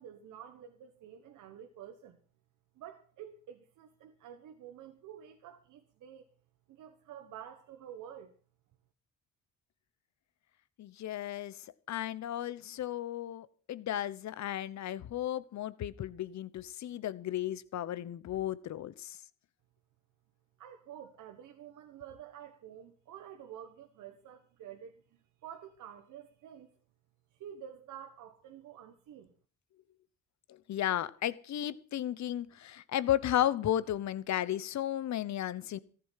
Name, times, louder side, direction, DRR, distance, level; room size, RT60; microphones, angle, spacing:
voice 1, 0.0-2.2 2.7-6.3 6.7-8.3 20.6-26.7 27.3-29.3, right 9 dB, 80° right, 6 dB, 1.4 m, -49 dB
voice 2, 10.8-11.6 11.9-19.2 30.7-35.8, left 12 dB, 65° left, 17 dB, 1.0 m, -34 dB
14.5 x 11.0 x 5.8 m, 0.43 s
cardioid pair, 90°, 30 cm